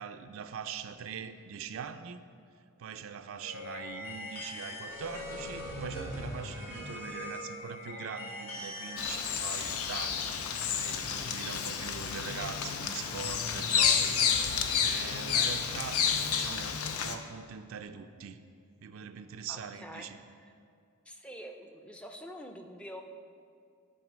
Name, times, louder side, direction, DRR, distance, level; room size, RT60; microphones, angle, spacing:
voice 1, 0.0-2.2 2.8-10.3 10.6-18.4 18.8-20.2, right 6 dB, 65° right, 9 dB, 0.4 m, -42 dB
sound 1, 3.4-9.0, left 1 dB, 70° left, 2.4 m, -41 dB
Bird vocalization bird call bird song, 9.0-17.2, left 7 dB, 90° left, 0.6 m, -30 dB
voice 2, 19.5-20.1 21.1-23.0, equal, 5° left, 4 dB, 0.4 m, -45 dB
11.0 x 4.3 x 6.1 m, 2.3 s
head